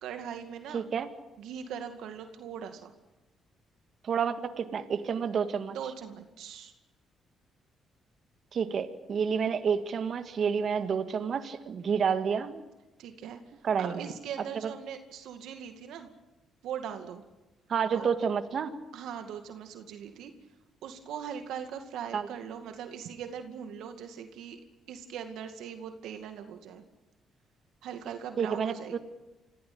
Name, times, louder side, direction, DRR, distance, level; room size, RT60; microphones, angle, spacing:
voice 1, 0.0-0.8 1.4-2.9 5.7-6.7 13.0-13.4 13.8-16.1 16.6-17.2 17.9-18.1 18.9-20.3 20.8-24.6 24.9-26.8 27.8-29.0, right 8 dB, 85° right, 6 dB, 2.2 m, -40 dB
voice 2, 0.7-1.1 4.0-5.8 8.5-12.6 13.6-14.0 14.6-14.7 17.7-18.7 22.1-22.3 28.4-29.0, right 6 dB, 55° right, 9 dB, 1.8 m, -29 dB
25.5 x 16.0 x 8.7 m, 1.0 s
cardioid pair, 90°, 0 cm